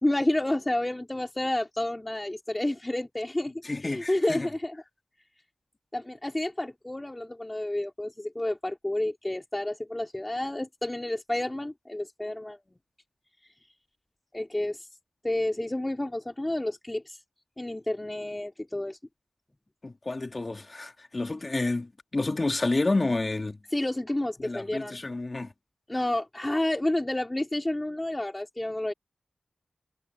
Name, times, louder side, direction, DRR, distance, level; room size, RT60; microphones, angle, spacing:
voice 1, 0.0-3.5 3.8-4.8 5.9-12.6 14.3-14.9 15.2-17.2 17.6-19.0 23.7-25.0 25.9-28.9, left 1 dB, 20° left, 2.8 m, -30 dB
voice 2, 3.6-4.5 19.8-23.6 24.4-25.5, left 2 dB, 40° left, 2.4 m, -29 dB
cardioid pair, 50°, 0 cm